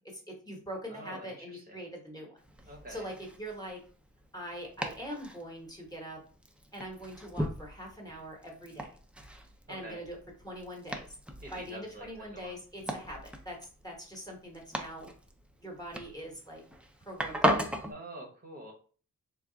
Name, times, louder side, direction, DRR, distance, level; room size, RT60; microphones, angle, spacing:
voice 1, 0.1-2.4 2.6-3.8 4.3-6.2 6.7-8.9 9.7-10.2 10.4-11.2 11.5-13.6 13.8-15.1 15.6-16.6 17.0-17.6, equal, 10° left, 0 dB, 0.9 m, -43 dB
voice 2, 0.9-1.8 2.7-3.1 9.7-10.0 11.4-12.5 17.2-17.3 17.9-18.7, right 1 dB, 30° right, -2 dB, 0.7 m, -46 dB
Domestic sounds home sounds, 2.4-17.9, equal, 5° right, 0.3 m, -38 dB
3.4 x 2.3 x 3.8 m, 0.40 s
wide cardioid pair, 165°, 33 cm